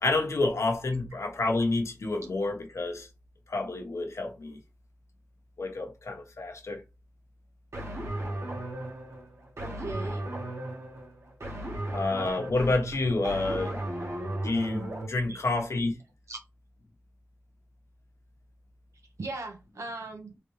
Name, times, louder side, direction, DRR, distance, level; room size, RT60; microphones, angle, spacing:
voice 1, 0.0-3.1 3.5-4.6 5.6-6.8 11.9-13.8 14.4-16.0, left 2 dB, 80° left, 1.2 m, -29 dB
sound 1, 7.7-15.1, right 1 dB, 70° right, 1.5 m, -35 dB
voice 2, 9.6-10.3 15.3-15.5 16.3-16.4 19.2-20.3, right 3 dB, 90° right, 1.2 m, -38 dB
3.6 x 3.5 x 3.2 m
wide cardioid pair, 80°, 5 cm